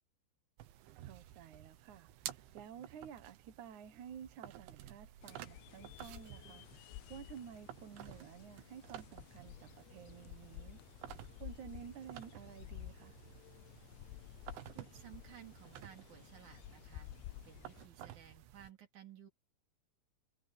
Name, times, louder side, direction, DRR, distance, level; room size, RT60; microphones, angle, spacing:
sound 1, 0.6-18.7, right 12 dB, 90° right, 3.8 m, -53 dB
voice 1, 1.0-10.8 11.4-13.1, right 8 dB, 60° right, 2.1 m, -52 dB
sound 2, 5.2-17.9, left 15 dB, 80° left, 3.0 m, -53 dB
voice 2, 14.7-17.1 17.4-19.3, right 9 dB, 45° right, 4.0 m, -56 dB
omnidirectional pair, 5.3 m